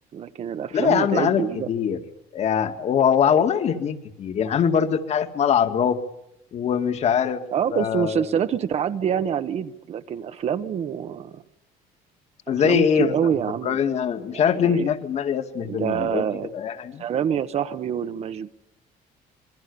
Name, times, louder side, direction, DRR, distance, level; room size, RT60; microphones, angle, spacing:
voice 1, 0.1-1.7 7.5-11.4 12.6-13.8 14.3-14.9 15.7-16.5 17.0-18.5, right 8 dB, 40° right, 11 dB, 1.2 m, -26 dB
voice 2, 0.7-2.0 2.3-6.0 6.5-7.4 7.7-8.3 12.5-13.3 13.6-16.2 16.5-17.0, left 8 dB, 45° left, 8 dB, 2.2 m, -22 dB
27.0 x 22.5 x 6.9 m, 0.85 s
cardioid pair, 170°, 16 cm